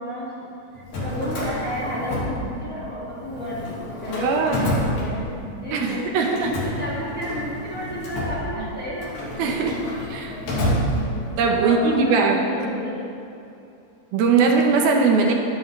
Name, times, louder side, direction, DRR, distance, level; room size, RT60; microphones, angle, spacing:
voice 1, 0.0-3.6 4.0-9.3 10.3-13.1, equal, 25° left, -8 dB, 1.9 m, -32 dB
Drawer open or close, 0.7-2.9 3.2-5.6 6.2-11.5, equal, 60° left, 4.3 m, -29 dB
voice 2, 4.2-4.6 5.7-6.6 8.6-8.7 9.4-10.4 11.4-12.4 14.1-15.3, right 4 dB, 75° right, 1 dB, 2.7 m, -20 dB
22.0 x 10.5 x 3.3 m, 2.7 s
omnidirectional pair, 4.6 m